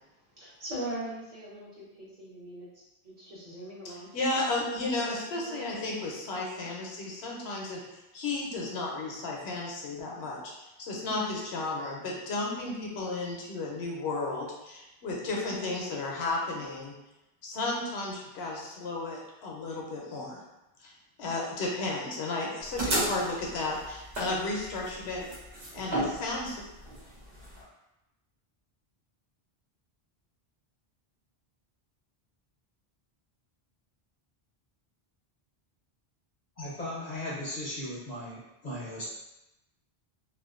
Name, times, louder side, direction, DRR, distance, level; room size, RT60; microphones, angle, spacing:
voice 1, 0.3-4.5 4.9-5.1 5.4-5.9, right 1 dB, 50° right, -8 dB, 0.9 m, -41 dB
voice 2, 4.1-10.5 10.8-16.9 17.4-20.4 20.8-20.9 21.2-25.3 25.7-26.6, left 2 dB, 80° left, -2 dB, 0.9 m, -33 dB
sound 1, 22.6-27.6, right 1 dB, 70° right, 1.0 m, -33 dB
voice 3, 36.6-39.1, left 1 dB, 50° left, -6 dB, 0.6 m, -37 dB
2.4 x 2.3 x 2.3 m, 0.96 s
omnidirectional pair, 1.1 m